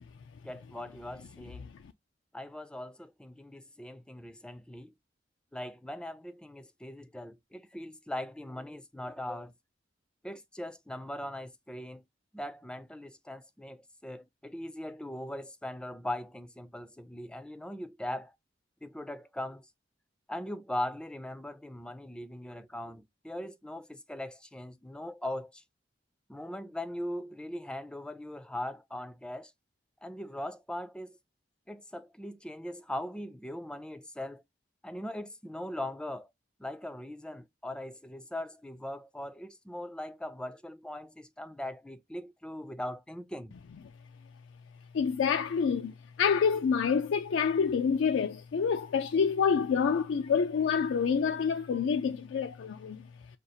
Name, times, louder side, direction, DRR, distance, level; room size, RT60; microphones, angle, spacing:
voice 1, 0.4-1.7 2.3-4.9 5.5-9.5 10.2-12.0 12.3-18.3 18.8-19.6 20.3-25.6 26.3-29.5 30.0-31.2 31.7-34.4 34.8-36.3 36.6-43.5, left 1 dB, 5° left, 0.4 m, -40 dB
voice 2, 44.9-53.0, left 6 dB, 85° left, 0.4 m, -27 dB
6.3 x 2.4 x 2.7 m
head